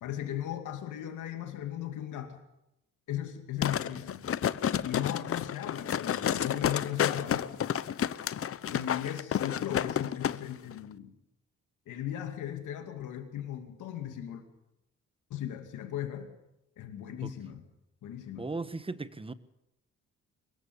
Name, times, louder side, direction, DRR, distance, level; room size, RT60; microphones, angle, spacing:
voice 1, 0.0-2.4 3.1-4.3 4.8-7.6 8.7-11.1 11.9-14.4 15.3-16.3 16.8-17.6 18.0-18.5, left 11 dB, 80° left, 2.6 m, -37 dB
sound 1, 3.6-10.4 10.7-10.8, left 9 dB, 50° left, 0.8 m, -30 dB
voice 2, 18.4-19.3, right 3 dB, 20° right, 1.2 m, -37 dB
23.0 x 21.0 x 7.1 m
cardioid pair, 90°, 30 cm